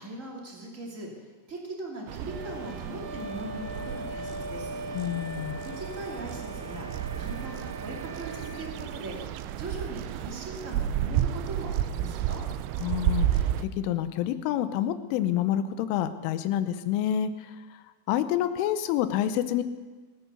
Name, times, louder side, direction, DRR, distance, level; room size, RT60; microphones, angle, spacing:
voice 1, 0.0-4.8 5.6-6.9 7.2-12.4, right 1 dB, 30° right, 0 dB, 1.5 m, -40 dB
sound 1, 2.1-13.6, right 11 dB, 85° right, 3.0 m, -32 dB
Wind instrument woodwind instrument, 2.2-8.8, left 1 dB, 65° right, 3.8 m, -41 dB
voice 2, 4.9-5.6 12.8-17.3 18.1-19.6, left 11 dB, 90° left, 11 dB, 3.3 m, -28 dB
22.5 x 9.4 x 6.7 m, 1.4 s
omnidirectional pair, 5.5 m